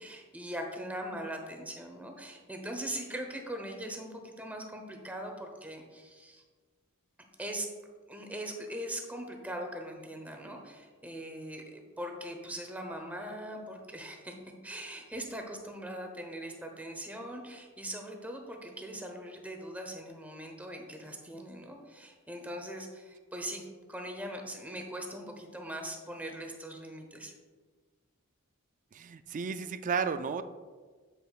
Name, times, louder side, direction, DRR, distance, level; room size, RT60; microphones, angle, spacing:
voice 1, 0.0-6.4 7.4-7.7 8.1-14.3 14.6-27.3, right 1 dB, 5° right, 3 dB, 0.9 m, -41 dB
voice 2, 28.9-30.4, right 5 dB, 35° right, 11 dB, 0.3 m, -33 dB
8.1 x 7.8 x 2.4 m, 1.4 s
head